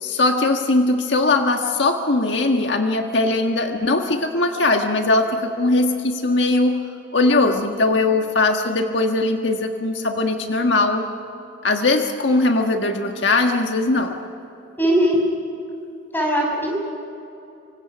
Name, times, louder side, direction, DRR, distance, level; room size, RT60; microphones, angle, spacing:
voice 1, 0.0-6.8 7.1-11.0 11.6-14.1, left 2 dB, 70° left, 4 dB, 1.5 m, -20 dB
voice 2, 14.8-15.2 16.1-16.7, equal, 10° left, -1 dB, 6.3 m, -19 dB
26.0 x 25.5 x 6.1 m, 2.9 s
head